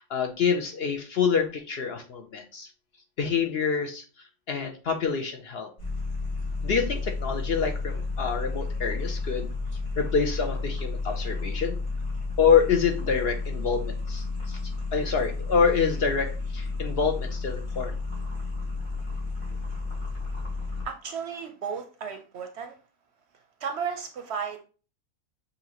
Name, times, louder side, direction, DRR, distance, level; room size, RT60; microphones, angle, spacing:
voice 1, 0.0-2.7 3.2-5.7 6.6-9.5 10.0-11.8 12.4-17.9, left 6 dB, 60° left, 5 dB, 0.7 m, -26 dB
sound 1, 5.8-20.9, left 3 dB, 75° left, 2.8 m, -32 dB
voice 2, 20.8-22.8 23.6-24.6, right 6 dB, 60° right, 6 dB, 0.7 m, -34 dB
6.6 x 2.5 x 2.9 m, 0.35 s
omnidirectional pair, 1.4 m